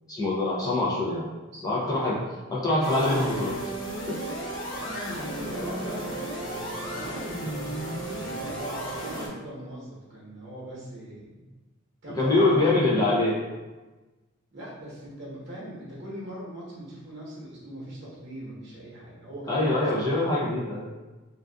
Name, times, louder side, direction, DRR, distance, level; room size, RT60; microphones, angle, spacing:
voice 1, 0.1-1.3 1.6-2.2 2.5-3.6 4.1-4.2 8.2-8.3 12.1-13.4 19.5-20.9, left 2 dB, 15° left, -7 dB, 0.5 m, -24 dB
voice 2, 1.5-2.3 4.6-8.0 8.5-11.4 12.0-12.8 14.5-20.1, equal, 55° right, -6 dB, 0.9 m, -40 dB
sound 1, 2.8-9.3, right 1 dB, 65° left, 0.9 m, -34 dB
2.5 x 2.3 x 2.3 m, 1.2 s
head